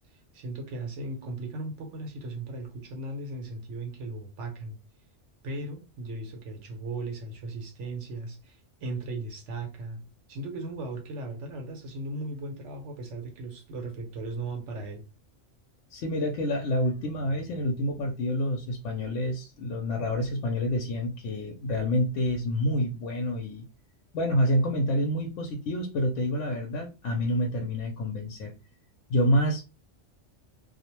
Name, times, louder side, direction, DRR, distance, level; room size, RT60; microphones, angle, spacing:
voice 1, 0.3-4.8 5.4-10.0 10.3-15.0, right 2 dB, 75° right, 1.1 m, -37 dB
voice 2, 15.9-23.6 24.1-28.5 29.1-29.6, equal, 80° left, 0.9 m, -28 dB
2.5 x 2.1 x 2.9 m
omnidirectional pair, 1.2 m